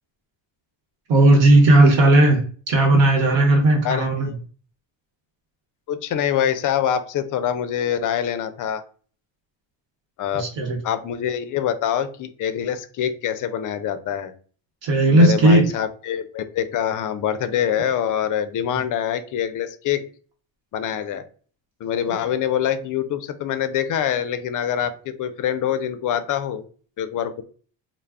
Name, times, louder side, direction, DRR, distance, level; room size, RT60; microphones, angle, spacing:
voice 1, 1.1-4.3 10.3-10.8 14.8-15.7, right 2 dB, 65° right, 2 dB, 0.9 m, -15 dB
voice 2, 3.8-4.4 5.9-8.8 10.2-10.5 10.8-14.3 15.1-20.0 20.7-21.2 21.8-26.6 27.0-27.4, left 9 dB, 45° left, 11 dB, 0.4 m, -25 dB
2.2 x 2.0 x 3.4 m, 0.41 s
supercardioid pair, 85°, 47 cm